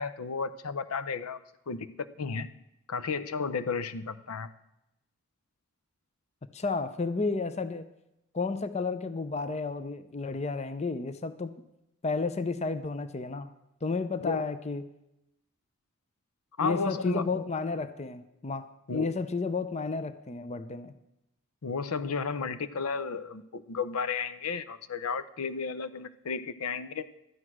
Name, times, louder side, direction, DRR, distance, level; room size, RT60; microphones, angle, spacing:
voice 1, 0.0-1.4 1.7-1.9 2.2-2.5 2.9-4.5 14.2-14.5 16.6-17.4 18.9-19.1 21.6-27.1, left 5 dB, 80° left, 13 dB, 0.7 m, -33 dB
voice 2, 6.5-7.9 8.3-11.6 12.0-13.5 13.8-14.8 16.6-20.9, left 4 dB, 30° left, 12 dB, 0.5 m, -32 dB
13.0 x 9.8 x 6.1 m, 0.86 s
head